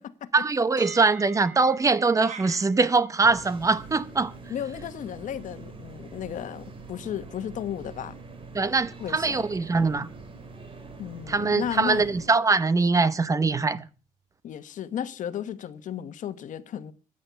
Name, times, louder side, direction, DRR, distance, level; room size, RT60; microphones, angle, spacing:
voice 1, 0.3-4.3 8.5-10.1 11.3-13.8, right 4 dB, 25° right, 0.9 m, -22 dB
sound 1, 0.8-12.7, right 6 dB, 85° right, 4.5 m, -51 dB
sound 2, 2.2-2.7, right 6 dB, 70° right, 2.5 m, -39 dB
sound 3, 3.2-12.3, right 3 dB, 40° right, 3.6 m, -44 dB
voice 2, 4.5-8.2 9.0-9.4 11.0-12.1 14.4-16.9, left 9 dB, 70° left, 1.2 m, -34 dB
15.5 x 10.0 x 6.9 m
cardioid pair, 145°, 13 cm